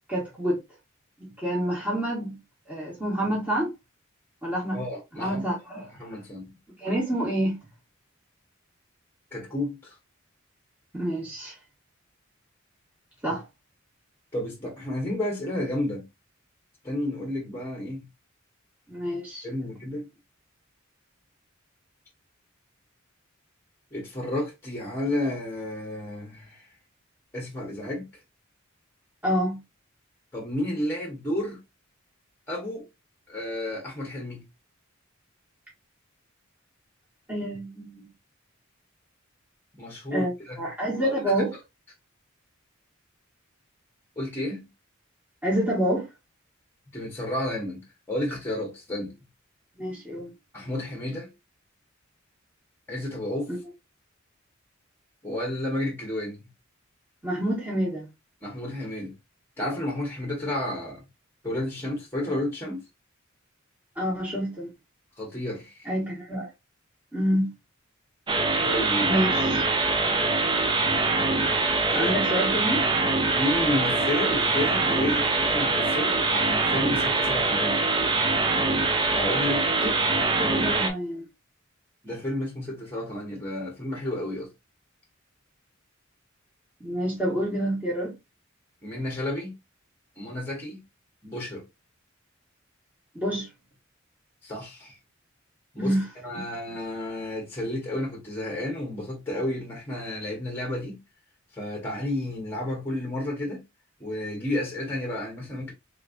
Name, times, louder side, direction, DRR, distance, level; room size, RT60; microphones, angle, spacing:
voice 1, 0.1-0.6 1.2-2.4 2.7-3.7 4.4-4.8 5.1-5.9 6.8-7.6 10.9-11.5 13.2-13.4 18.9-19.5 29.2-29.6 37.3-38.1 40.1-41.5 45.4-46.0 49.8-50.3 53.5-53.6 57.2-58.1 64.0-64.7 65.8-66.5 67.1-67.5 69.1-69.6 71.9-72.8 79.8-79.9 80.4-81.2 86.8-88.1 93.1-93.5 95.8-96.0, equal, 10° right, 1.5 m, -27 dB
voice 2, 4.7-5.4 6.0-6.5 9.3-9.9 14.3-16.0 16.8-18.1 19.4-20.1 23.9-26.6 27.3-28.1 30.3-31.6 32.5-32.9 33.3-34.4 39.8-40.6 41.0-41.2 44.2-44.7 46.9-49.1 50.5-51.3 52.9-53.5 55.2-56.4 58.4-59.1 59.6-61.0 61.4-62.8 65.2-65.8 68.6-69.1 71.9-73.0 73.3-77.9 79.1-79.7 80.7-80.8 82.0-84.5 88.8-89.5 90.2-90.8 91.2-91.6 94.4-94.9 95.7-101.0 101.5-103.6 104.0-105.7, left 1 dB, 10° left, 1.2 m, -31 dB
sound 1, 68.3-80.9, right 3 dB, 25° right, 0.5 m, -24 dB
3.6 x 3.1 x 2.5 m
head